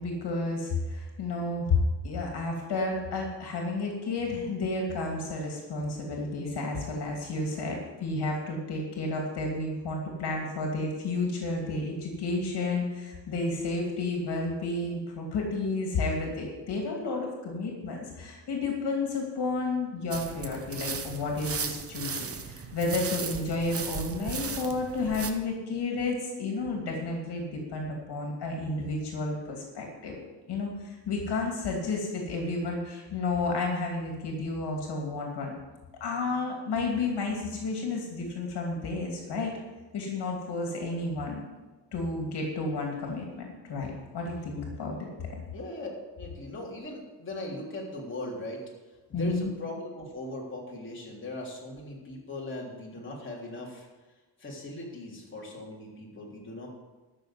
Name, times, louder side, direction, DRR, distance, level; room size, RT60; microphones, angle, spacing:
voice 1, 0.0-30.2 30.5-35.5 36.0-39.5 39.9-41.4 41.9-45.0 49.1-49.5, left 3 dB, 70° left, 0 dB, 2.6 m, -31 dB
sound 1, 20.1-25.3, right 6 dB, 35° right, 1.0 m, -36 dB
voice 2, 45.5-45.9 46.2-48.6 49.1-53.9 54.4-56.7, left 2 dB, 30° left, -4 dB, 3.4 m, -39 dB
12.5 x 6.7 x 7.6 m, 1.2 s
cardioid pair, 140°, 42 cm